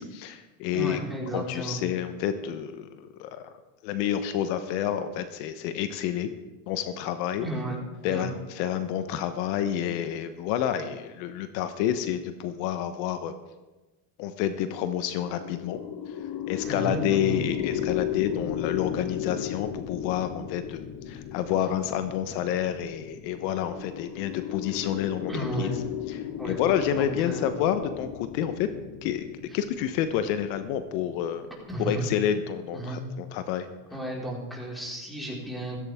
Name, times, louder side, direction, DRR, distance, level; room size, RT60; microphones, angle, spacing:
voice 1, 0.0-1.0 1.3-3.5 3.8-6.3 6.7-7.5 8.0-13.3 14.2-15.8 16.1-16.2 16.5-25.3 25.6-25.7 26.1-28.7 29.0-29.3 29.5-31.5 31.8-33.7, left 10 dB, 80° left, 10 dB, 1.1 m, -29 dB
voice 2, 0.7-1.8 7.4-7.8 8.0-8.3 16.6-17.4 25.3-25.7 26.4-26.6 27.0-27.5 31.7-32.1 32.7-33.0 33.9-35.8, right 1 dB, ahead, -4 dB, 4.8 m, -33 dB
sound 1, 15.0-32.2, left 10 dB, 55° left, 1.2 m, -35 dB
16.0 x 14.5 x 3.6 m, 1.1 s
supercardioid pair, 110°, 50 cm